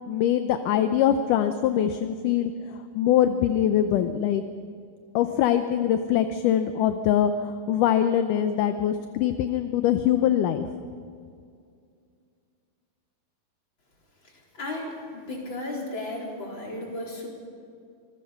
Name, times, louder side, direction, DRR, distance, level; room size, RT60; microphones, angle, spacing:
voice 1, 0.1-2.5 3.0-4.4 5.2-10.7, left 10 dB, 75° left, 9 dB, 2.1 m, -23 dB
voice 2, 14.5-17.3, left 2 dB, 30° left, -2 dB, 4.7 m, -34 dB
26.0 x 20.5 x 5.8 m, 2.3 s
omnidirectional pair, 4.2 m